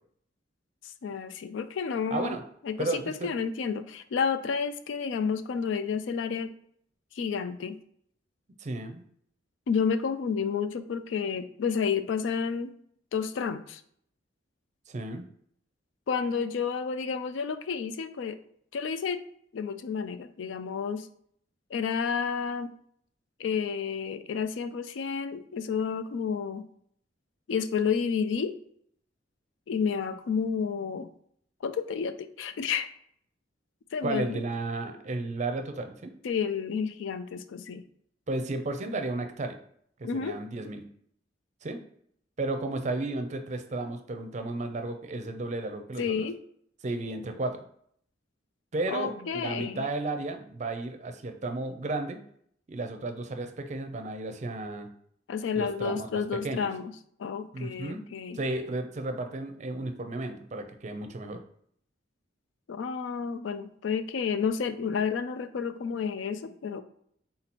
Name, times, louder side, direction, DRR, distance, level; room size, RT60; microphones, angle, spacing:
voice 1, 0.8-2.4 2.6-6.5 7.1-7.8 9.7-12.7 13.1-13.8 16.1-18.4 18.7-19.2 19.5-21.1 21.7-22.7 23.4-26.7 27.5-28.6 29.7-31.1 31.6-32.9 33.9-34.4 36.2-37.9 40.0-40.4 46.0-46.4 48.9-49.9 55.3-56.9 57.2-58.4 62.7-66.8, left 6 dB, 80° left, 11 dB, 0.4 m, -30 dB
voice 2, 2.1-2.4 2.8-3.3 8.6-9.0 14.9-15.2 34.0-36.1 38.3-39.6 40.0-40.8 41.6-41.8 42.4-46.3 46.8-47.6 48.7-52.2 52.7-54.9 55.5-56.7 57.5-58.0 58.3-61.4, right 2 dB, 40° right, 7 dB, 0.5 m, -33 dB
3.8 x 2.9 x 4.2 m, 0.66 s
head